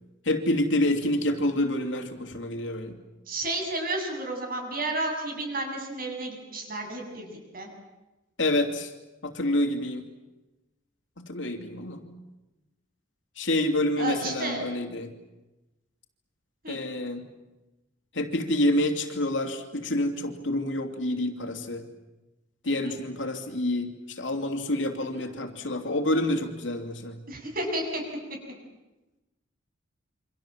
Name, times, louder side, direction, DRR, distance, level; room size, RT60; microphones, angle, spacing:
voice 1, 0.2-3.0 8.4-8.9 9.2-10.0 11.2-12.0 13.4-15.1 16.7-17.2 18.1-21.9 22.6-27.2, left 1 dB, 70° left, 5 dB, 3.0 m, -28 dB
voice 2, 3.3-7.7 14.0-14.6 16.6-16.8 22.7-23.0 25.0-25.3 27.3-28.0, right 2 dB, 50° right, 3 dB, 7.5 m, -32 dB
28.0 x 25.5 x 7.6 m, 1.0 s
head